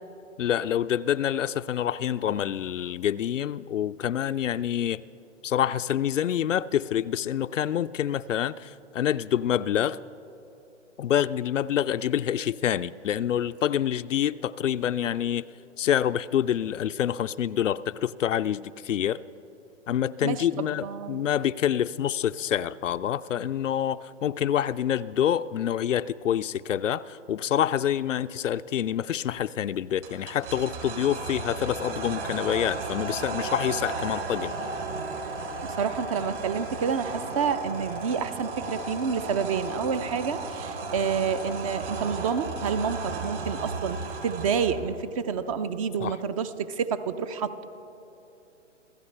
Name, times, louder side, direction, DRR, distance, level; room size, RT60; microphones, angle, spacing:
voice 1, 0.4-5.0 5.4-10.0 11.0-15.4 15.8-19.2 19.9-34.5 46.0-46.2, left 10 dB, 75° left, 14 dB, 0.5 m, -27 dB
voice 2, 20.2-21.2 35.6-47.7, right 6 dB, 30° right, 13 dB, 0.6 m, -29 dB
sound 1, 30.0-44.9, right 3 dB, 50° right, 4.1 m, -34 dB
27.5 x 15.5 x 3.3 m, 2.9 s
hypercardioid pair, 130°, 37 cm